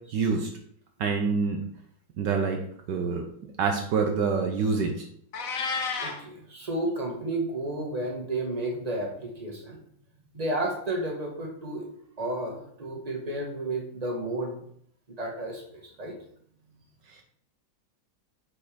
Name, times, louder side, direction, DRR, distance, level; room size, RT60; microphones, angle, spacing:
voice 1, 0.1-0.5 1.0-1.6 2.2-2.6 2.9-3.2 3.6-5.0, right 5 dB, 70° right, 3 dB, 1.5 m, -26 dB
Meow, 5.3-6.2, left 4 dB, 50° left, 1.3 m, -30 dB
voice 2, 6.0-9.8 10.3-11.9 12.2-14.6 15.2-16.1, right 1 dB, 20° right, -1 dB, 1.9 m, -32 dB
6.5 x 5.7 x 5.1 m, 0.65 s
omnidirectional pair, 2.0 m